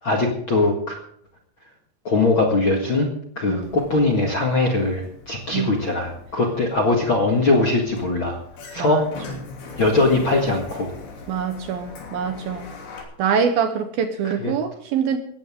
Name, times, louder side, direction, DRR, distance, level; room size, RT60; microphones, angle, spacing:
voice 1, 0.0-0.9 2.0-3.1 3.3-8.4 8.7-9.2 9.8-10.9 14.4-14.5, left 2 dB, 45° left, 2 dB, 1.7 m, -21 dB
Sliding door, 3.6-13.0, left 4 dB, 60° left, 4.8 m, -40 dB
voice 2, 11.3-12.7 13.2-15.2, right 7 dB, 70° right, 8 dB, 2.6 m, -24 dB
18.0 x 14.5 x 3.7 m, 0.67 s
omnidirectional pair, 5.0 m